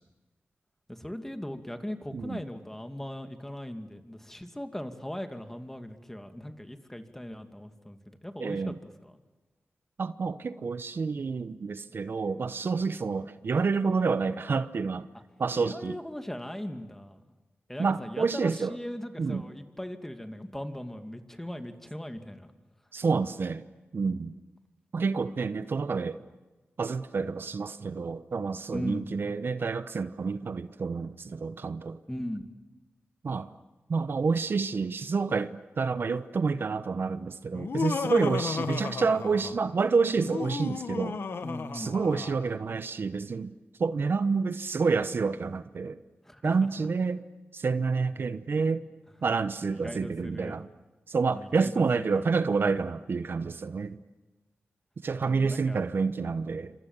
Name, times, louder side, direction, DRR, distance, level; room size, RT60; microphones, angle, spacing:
voice 1, 0.9-8.7 9.0-9.2 15.5-17.2 17.7-22.5 28.7-29.1 32.1-32.5 41.4-42.0 46.2-46.5 49.7-50.6 51.3-51.8 52.1-52.3 55.2-55.8, left 1 dB, 10° left, 2.5 m, -39 dB
voice 2, 2.1-2.4 8.4-8.8 10.0-15.1 15.4-16.0 17.8-18.7 19.2-19.4 22.9-23.6 23.9-24.3 24.9-26.2 26.8-32.0 33.2-33.5 33.9-41.2 41.7-43.5 43.8-46.0 46.4-47.2 47.5-48.8 49.2-50.7 51.1-54.0 55.0-56.7, right 4 dB, 65° right, 1.0 m, -28 dB
Laughter, 37.5-39.7 40.2-42.5, left 5 dB, 80° left, 1.3 m, -34 dB
28.5 x 26.0 x 7.5 m
wide cardioid pair, 85°, 4 cm